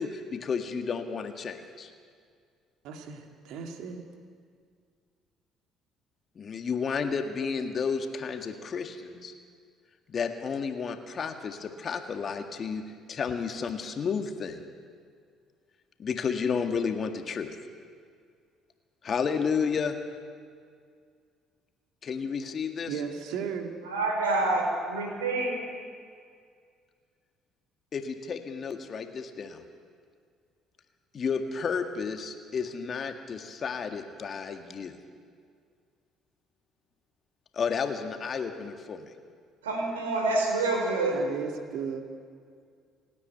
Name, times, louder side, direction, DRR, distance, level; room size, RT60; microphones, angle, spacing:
voice 1, 0.0-1.9 6.4-9.3 10.1-12.8 13.1-14.6 16.0-17.5 19.0-20.0 22.0-23.0 27.9-29.6 31.1-35.0 37.5-39.0, left 6 dB, 45° left, 6 dB, 1.9 m, -32 dB
voice 2, 2.8-4.1 22.9-23.7 41.1-42.0, right 7 dB, 65° right, 4 dB, 2.0 m, -35 dB
voice 3, 23.8-24.6 24.9-25.6 39.6-41.2, right 2 dB, 85° right, 1 dB, 4.5 m, -27 dB
29.0 x 9.8 x 9.2 m, 2.1 s
hypercardioid pair, 50°, 0 cm